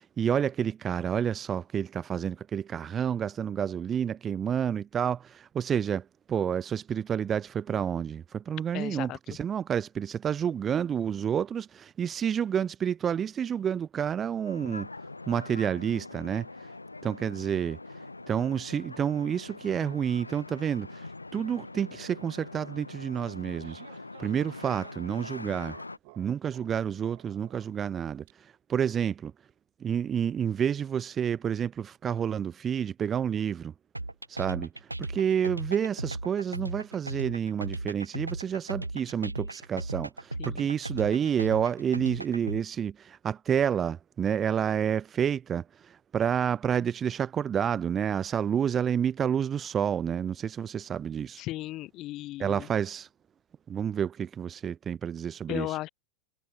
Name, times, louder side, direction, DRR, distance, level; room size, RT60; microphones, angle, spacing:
voice 1, 0.0-14.9 15.3-16.7 17.0-17.8 18.3-23.8 24.2-25.8 26.2-29.3 29.8-33.7 34.3-51.4 52.4-53.1 53.7-55.8, right 8 dB, 25° right, 0.5 m, -29 dB
voice 2, 8.7-9.2 40.4-40.7 51.4-52.7 55.5-55.9, left 16 dB, 35° left, 0.7 m, -35 dB
sound 1, 14.4-26.0, left 3 dB, 80° left, 2.8 m, -43 dB
sound 2, 23.3-28.3, right 28 dB, 45° right, 4.0 m, -56 dB
sound 3, 33.9-42.6, right 2 dB, 85° right, 2.3 m, -36 dB
figure-of-eight pair, 90°, 0 cm